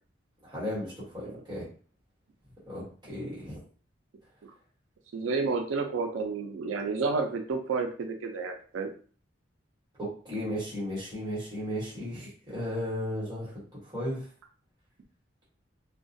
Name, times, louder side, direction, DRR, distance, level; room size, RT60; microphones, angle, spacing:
voice 1, 0.4-1.7 2.7-3.6 10.0-13.6 13.8-14.3, equal, 20° right, -8 dB, 1.2 m, -35 dB
voice 2, 5.1-8.9, right 4 dB, 90° right, 4 dB, 0.4 m, -30 dB
2.3 x 2.2 x 2.5 m, 0.41 s
head